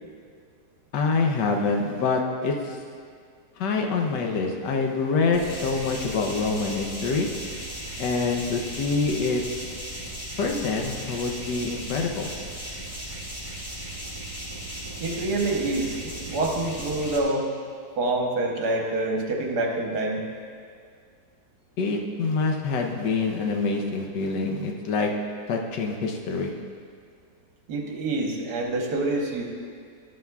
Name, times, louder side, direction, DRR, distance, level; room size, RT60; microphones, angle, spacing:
voice 1, 0.9-2.8 3.6-7.3 8.0-9.7 10.4-12.3 21.8-25.1 25.5-26.5, left 4 dB, 85° left, 2 dB, 1.4 m, -26 dB
sound 1, 5.3-17.2, right 1 dB, 20° left, 1.4 m, -36 dB
voice 2, 15.0-17.5 18.0-20.3 27.7-29.4, right 2 dB, 70° right, 1 dB, 1.6 m, -26 dB
12.5 x 11.0 x 2.3 m, 2.1 s
omnidirectional pair, 1.8 m